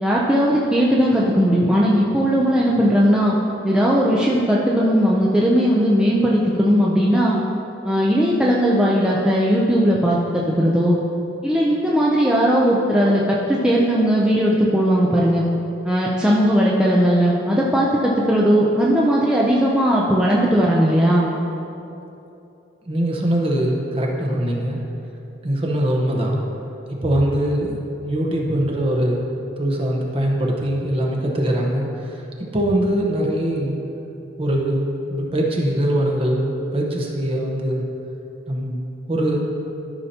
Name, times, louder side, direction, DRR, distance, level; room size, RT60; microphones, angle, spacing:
voice 1, 0.0-3.4 3.6-7.4 7.8-10.2 10.6-10.9 11.4-15.4 15.8-21.3, equal, 5° right, -5 dB, 0.5 m, -18 dB
voice 2, 22.9-24.8 25.4-26.4 27.0-27.8 28.1-29.2 29.6-33.7 34.4-37.8 38.5-38.8 39.1-39.5, right 1 dB, 30° right, -1 dB, 0.9 m, -22 dB
13.0 x 5.6 x 2.8 m, 2.8 s
head